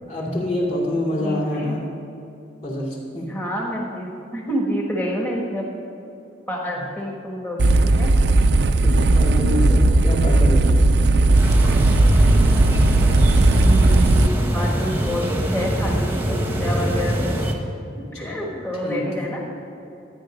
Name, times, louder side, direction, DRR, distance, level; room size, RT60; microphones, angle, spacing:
voice 1, 0.1-1.9 2.6-3.4 8.8-10.8 18.2-18.5 18.8-19.2, left 1 dB, 35° left, -4 dB, 2.6 m, -26 dB
voice 2, 1.0-1.8 3.1-5.7 6.5-8.1 13.6-17.3 18.2-19.4, equal, 10° left, -3 dB, 1.5 m, -28 dB
sound 1, 7.6-14.3, right 2 dB, 65° right, 0.5 m, -16 dB
sound 2, 11.3-17.5, right 1 dB, 10° right, 1.0 m, -23 dB
13.0 x 10.0 x 5.2 m, 2.8 s
head